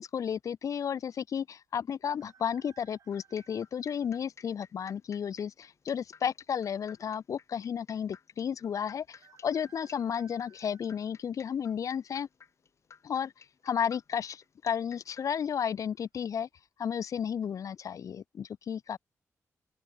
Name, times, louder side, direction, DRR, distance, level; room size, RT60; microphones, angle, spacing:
voice 1, 0.0-12.3 13.0-13.3 13.6-16.5 16.8-19.0, left 8 dB, 75° left, 1.3 m, -33 dB
sound 1, 2.1-4.2 4.8-4.9 6.0-6.6 6.9-7.0 7.2-7.3 9.1-11.8 12.3-12.7 13.8-14.2 14.4-14.5 15.1-15.4 15.9-16.1, right 8 dB, 80° right, 7.0 m, -62 dB
sound 2, 3.1-15.3, left 6 dB, 60° left, 7.0 m, -54 dB
open air
wide cardioid pair, 140°, 6 cm